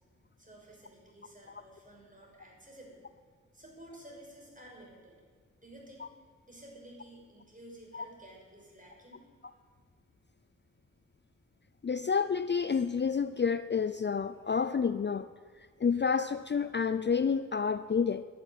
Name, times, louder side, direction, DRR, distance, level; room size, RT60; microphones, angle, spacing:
voice 1, 0.4-3.1 3.5-5.2 5.6-6.1 6.4-9.3, right 1 dB, 25° right, -2 dB, 5.9 m, -52 dB
voice 2, 11.8-15.3 15.8-18.2, left 6 dB, 40° left, 13 dB, 0.5 m, -29 dB
11.0 x 10.5 x 9.8 m, 1.5 s
wide cardioid pair, 60°, 29 cm